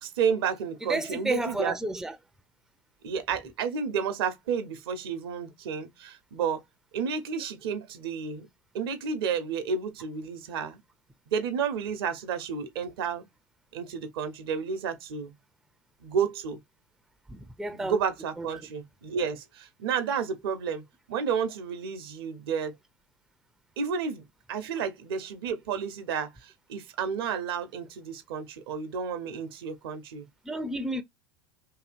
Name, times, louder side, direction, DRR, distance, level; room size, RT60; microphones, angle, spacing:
voice 1, 0.0-1.8 3.0-6.6 6.9-8.5 8.7-10.8 11.3-13.3 13.7-15.3 16.0-16.6 17.7-22.7 23.8-30.3, right 6 dB, 70° right, 0.9 m, -31 dB
voice 2, 0.8-2.2 17.3-17.9 18.4-18.5 30.4-31.0, right 1 dB, 5° right, 0.5 m, -31 dB
2.8 x 2.7 x 2.5 m
hypercardioid pair, 90°, 13 cm